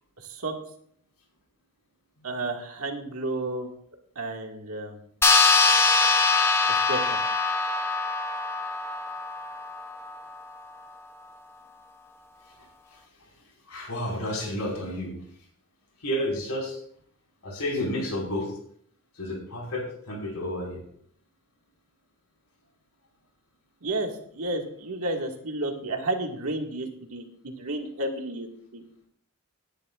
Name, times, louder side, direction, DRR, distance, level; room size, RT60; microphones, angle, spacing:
voice 1, 0.2-0.5 2.2-3.7 4.2-5.0 6.7-7.2 23.8-28.5 28.7-28.8, right 2 dB, 70° right, 2 dB, 2.0 m, -32 dB
sound 1, 5.2-10.1, left 4 dB, 10° left, 0.6 m, -23 dB
voice 2, 13.7-15.2 16.0-16.8 17.4-18.5 19.2-20.8, left 1 dB, 90° left, -1 dB, 5.0 m, -31 dB
18.0 x 11.0 x 2.5 m, 0.64 s
head